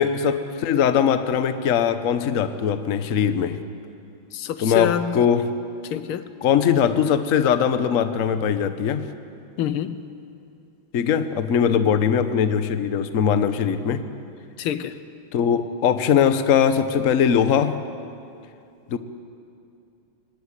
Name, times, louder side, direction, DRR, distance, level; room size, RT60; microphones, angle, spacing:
voice 1, 0.0-3.6 4.6-5.5 6.4-9.0 10.9-14.0 15.3-17.8 18.9-19.0, left 8 dB, 50° left, 10 dB, 1.1 m, -21 dB
voice 2, 4.3-5.1 5.9-6.3 9.6-10.0 14.6-14.9, left 10 dB, 85° left, 12 dB, 1.7 m, -26 dB
21.5 x 17.0 x 9.8 m, 2.5 s
omnidirectional pair, 2.3 m